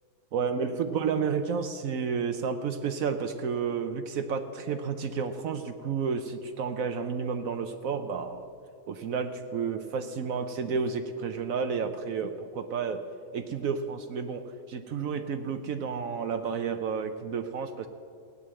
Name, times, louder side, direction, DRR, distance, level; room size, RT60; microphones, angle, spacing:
voice 1, 0.3-8.4 8.9-13.0 13.3-17.9, right 6 dB, 75° right, 7 dB, 1.1 m, -31 dB
16.5 x 9.3 x 7.6 m, 2.4 s
omnidirectional pair, 1.5 m